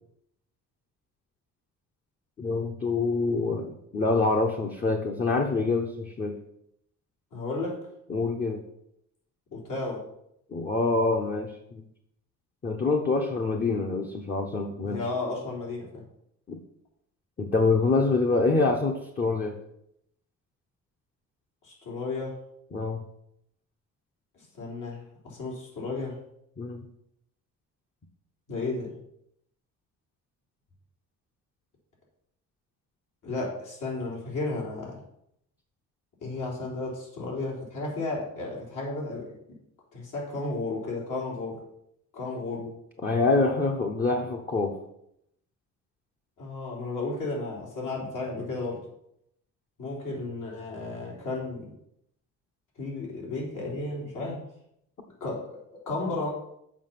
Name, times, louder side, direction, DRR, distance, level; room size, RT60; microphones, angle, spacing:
voice 1, 2.4-6.4 8.1-8.6 10.5-11.8 12.6-15.0 16.5-16.6 17.4-19.5 22.7-23.0 26.6-26.8 43.0-44.8, left 3 dB, 30° left, 1 dB, 0.9 m, -26 dB
voice 2, 7.3-7.8 9.5-10.0 14.8-16.0 21.6-22.4 24.6-26.2 28.5-28.9 33.2-35.0 36.2-39.3 39.9-41.6 42.1-42.7 46.4-48.8 49.8-51.7 52.8-54.4 55.2-56.3, left 3 dB, 70° left, -3 dB, 3.5 m, -33 dB
7.4 x 5.8 x 5.8 m, 0.76 s
cardioid pair, 125°, 32 cm